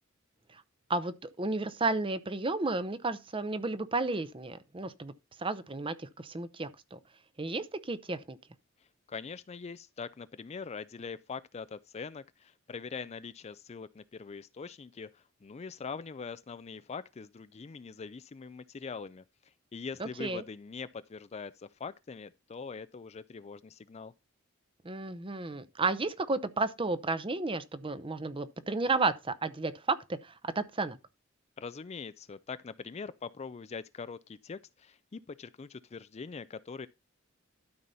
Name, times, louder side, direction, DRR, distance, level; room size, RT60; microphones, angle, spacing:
voice 1, 0.9-5.1 5.4-7.0 7.4-8.4 20.0-20.4 24.8-31.0, right 3 dB, 25° right, 0.7 m, -32 dB
voice 2, 9.1-19.2 19.7-24.1 31.6-36.9, left 5 dB, 30° left, 0.4 m, -43 dB
12.5 x 4.2 x 5.4 m
head